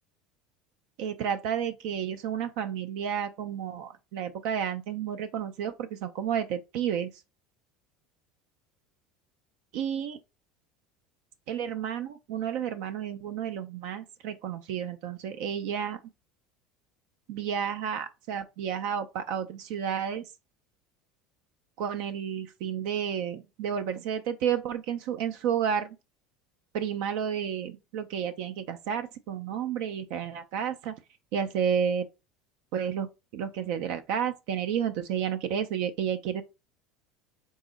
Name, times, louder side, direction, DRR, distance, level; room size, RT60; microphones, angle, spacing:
voice 1, 1.0-7.1 9.7-10.2 11.5-16.0 17.3-20.2 21.8-25.9 26.7-30.9 31.3-32.1 32.7-36.4, right 8 dB, 70° right, 0.4 m, -31 dB
3.6 x 2.0 x 3.8 m
hypercardioid pair, 90°, 0 cm